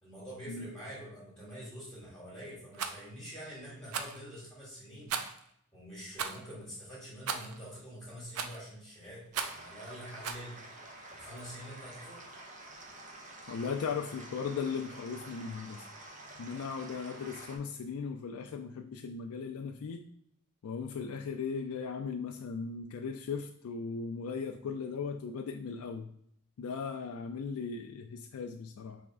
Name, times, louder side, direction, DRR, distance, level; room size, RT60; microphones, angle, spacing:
voice 1, 0.0-5.2 5.7-10.6 11.1-12.2, equal, 10° left, -9 dB, 1.9 m, -46 dB
Rattle, 2.7-3.0 3.9-4.2 5.1-5.4 6.1-6.4 7.3-7.6 8.3-8.7 9.3-9.7 10.2-10.5, right 6 dB, 90° right, 0.5 m, -36 dB
sound 1, 9.3-17.6, right 1 dB, 35° right, 0.9 m, -49 dB
voice 2, 13.5-15.9 16.4-20.0 20.6-26.1 26.6-29.0, left 5 dB, 80° left, 5 dB, 0.4 m, -37 dB
3.5 x 3.0 x 4.8 m, 0.70 s
head